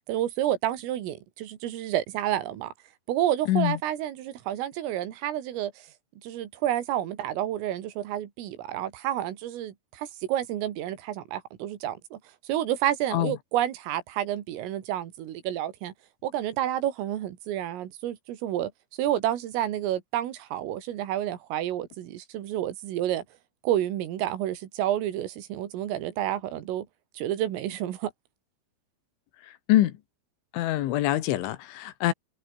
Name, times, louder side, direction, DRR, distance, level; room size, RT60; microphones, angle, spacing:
voice 1, 0.1-2.7 3.1-5.7 6.2-12.2 12.5-15.9 16.2-18.7 19.0-23.2 23.6-26.9 27.2-28.1, right 12 dB, 80° right, 4.7 m, -29 dB
voice 2, 3.5-3.8 13.1-13.3 29.7-29.9 30.5-32.1, left 14 dB, 75° left, 3.7 m, -24 dB
omnidirectional pair, 5.8 m